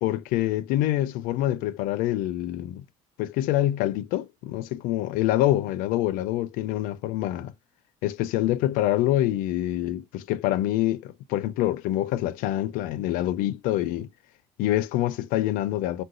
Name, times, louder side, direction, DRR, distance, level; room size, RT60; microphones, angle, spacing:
voice 1, 0.0-2.8 3.2-7.5 8.0-14.1 14.6-16.0, left 14 dB, 80° left, 0.4 m, -26 dB
3.8 x 2.2 x 2.4 m
cardioid pair, 160°, 14 cm